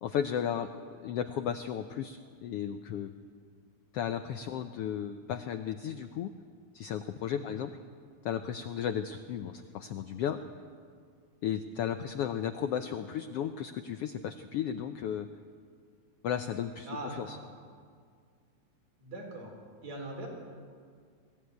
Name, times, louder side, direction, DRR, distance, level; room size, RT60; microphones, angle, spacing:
voice 1, 0.0-3.1 3.9-6.3 6.7-7.7 8.2-10.4 11.4-15.3 16.2-17.4, left 9 dB, 90° left, 9 dB, 1.3 m, -34 dB
voice 2, 16.8-17.4 19.0-19.5 19.8-20.3, right 2 dB, 60° right, 1 dB, 5.3 m, -41 dB
21.5 x 15.5 x 9.4 m, 2.1 s
omnidirectional pair, 3.6 m